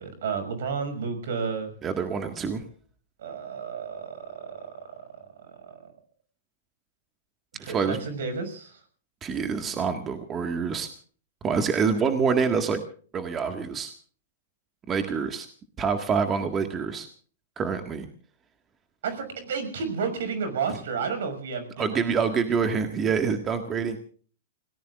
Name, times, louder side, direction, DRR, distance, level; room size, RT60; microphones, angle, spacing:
voice 1, 0.0-1.7 3.2-5.9 7.6-8.8 19.0-22.0, right 5 dB, 75° right, 9 dB, 6.2 m, -32 dB
voice 2, 1.8-2.6 7.6-8.0 9.2-10.9 11.4-12.8 13.1-13.9 14.9-15.5 15.8-17.1 17.6-18.1 21.8-24.0, right 6 dB, 20° right, 6 dB, 1.8 m, -26 dB
29.0 x 18.5 x 2.5 m, 0.42 s
hypercardioid pair, 130°, 0 cm